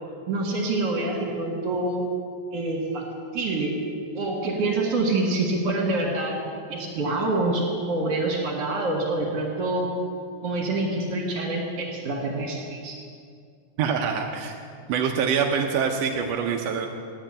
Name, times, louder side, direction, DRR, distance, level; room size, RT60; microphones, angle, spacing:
voice 1, 0.3-2.0 2.5-3.0 3.3-3.8 4.1-6.3 6.7-7.6 7.9-9.9 10.4-13.0, right 2 dB, 55° right, -3 dB, 2.6 m, -26 dB
voice 2, 13.8-14.6 14.9-16.9, right 6 dB, 75° right, 2 dB, 1.5 m, -25 dB
9.0 x 8.2 x 8.8 m, 2.2 s
omnidirectional pair, 3.6 m